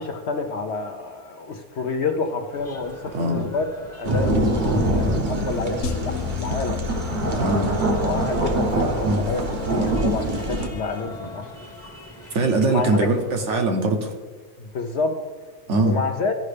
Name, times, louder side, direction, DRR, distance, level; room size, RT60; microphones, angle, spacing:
voice 1, 0.0-3.6 3.9-6.9 7.2-7.5 8.0-9.4 9.7-11.5 12.7-12.9 14.6-15.1 15.8-16.3, left 4 dB, 60° left, 5 dB, 0.8 m, -28 dB
sound 1, 2.5-13.6, equal, 10° left, 1.1 m, -42 dB
sound 2, 4.0-10.7, right 1 dB, 40° right, 0.9 m, -24 dB
sound 3, 5.8-10.2, left 8 dB, 75° left, 1.2 m, -34 dB
voice 2, 7.3-7.8 9.0-9.2 12.3-14.1 15.7-16.0, right 2 dB, 60° right, 4 dB, 1.1 m, -21 dB
14.5 x 5.3 x 3.3 m, 1.4 s
omnidirectional pair, 1.5 m